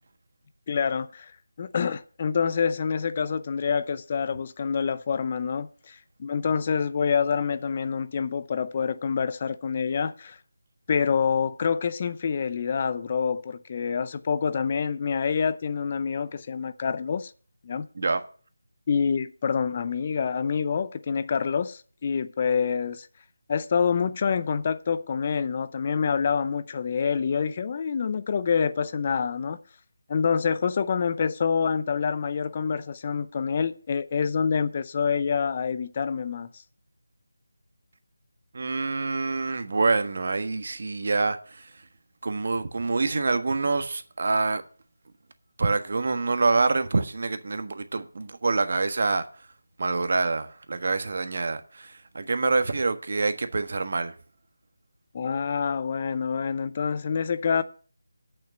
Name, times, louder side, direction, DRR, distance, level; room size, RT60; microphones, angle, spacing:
voice 1, 0.7-1.3 1.6-10.4 10.9-17.3 17.6-17.9 18.9-23.1 23.5-29.6 30.1-36.5 55.1-57.6, left 6 dB, 30° left, 0.5 m, -27 dB
voice 2, 38.5-41.7 42.2-44.6 45.6-49.2 49.8-54.1, right 3 dB, 50° right, 1.4 m, -26 dB
8.6 x 7.0 x 8.7 m
figure-of-eight pair, 165°, 0 cm